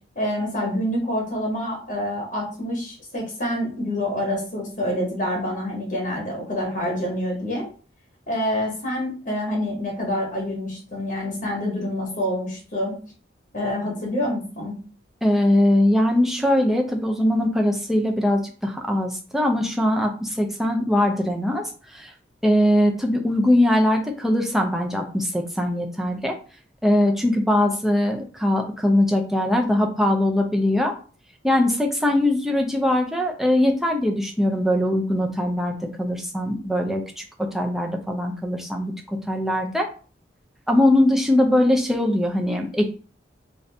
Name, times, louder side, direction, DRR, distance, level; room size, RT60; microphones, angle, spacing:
voice 1, 0.2-7.7 8.3-12.9 13.5-14.8, left 1 dB, 45° left, -1 dB, 1.0 m, -27 dB
voice 2, 15.2-21.6 21.9-22.1 22.4-26.4 26.8-30.9 31.4-37.2 37.5-39.9 40.7-42.9, left 1 dB, ahead, 1 dB, 0.4 m, -21 dB
2.6 x 2.6 x 3.2 m, 0.39 s
head